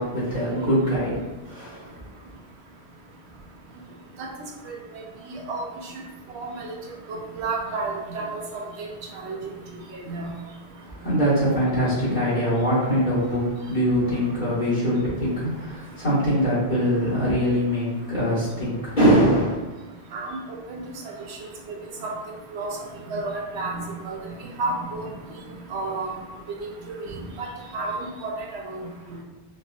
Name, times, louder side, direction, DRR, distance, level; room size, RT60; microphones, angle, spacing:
voice 1, 0.0-2.0 11.0-19.6, equal, 45° left, -10 dB, 1.6 m, -23 dB
voice 2, 5.3-5.6 6.3-6.7 7.1-8.9 9.1-9.4 10.1-10.3 20.1-20.3 20.7-20.8 22.0-22.1 22.5-22.8 23.1-24.2 24.6-25.1 25.7-26.1 26.6-26.7 27.0-27.5 27.7-27.9 28.2-28.9, right 3 dB, 80° right, 0 dB, 0.9 m, -31 dB
4.2 x 2.1 x 2.5 m, 1.1 s
omnidirectional pair, 1.1 m